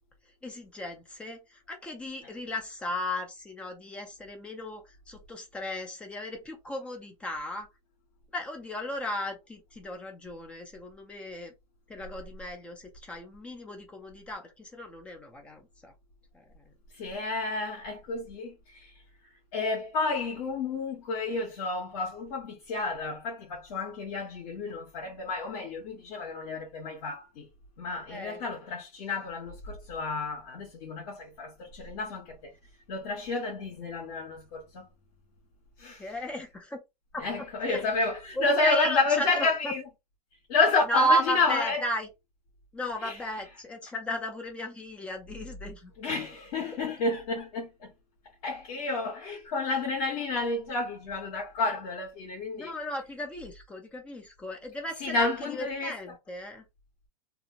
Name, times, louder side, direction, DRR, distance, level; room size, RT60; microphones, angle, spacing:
voice 1, 0.4-7.7 8.3-11.5 11.9-15.9 16.3-16.7 28.1-28.4 36.0-36.8 37.1-37.3 37.7-37.8 38.4-39.7 40.9-42.1 42.7-45.9 52.5-56.6, equal, 5° left, 0.3 m, -34 dB
voice 2, 16.9-19.0 19.5-27.5 27.8-32.5 32.9-34.8 35.8-36.1 37.2-39.9 40.5-41.8 43.0-43.2 46.0-47.9 48.4-52.7 55.0-56.2, left 3 dB, 55° left, 1.5 m, -30 dB
2.8 x 2.5 x 2.8 m
hypercardioid pair, 155°, 20 cm